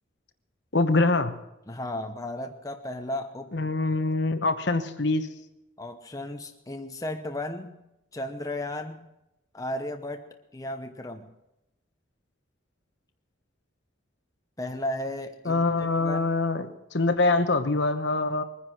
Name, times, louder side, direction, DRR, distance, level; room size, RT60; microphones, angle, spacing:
voice 1, 0.7-1.3 3.5-5.3 15.4-18.4, left 3 dB, 60° left, 9 dB, 1.1 m, -24 dB
voice 2, 1.7-3.7 5.8-7.8 8.1-9.1 9.5-11.3 14.6-16.3, left 1 dB, 15° left, 5 dB, 0.8 m, -35 dB
21.5 x 10.0 x 6.1 m, 0.89 s
head